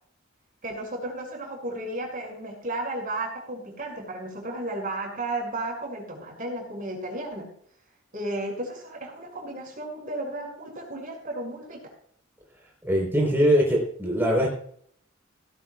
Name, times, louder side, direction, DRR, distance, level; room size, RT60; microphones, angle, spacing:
voice 1, 0.6-7.5 8.1-11.8, right 2 dB, 45° right, 0 dB, 5.8 m, -33 dB
voice 2, 12.8-14.5, equal, 10° right, -3 dB, 4.0 m, -22 dB
18.0 x 15.5 x 2.4 m, 0.62 s
head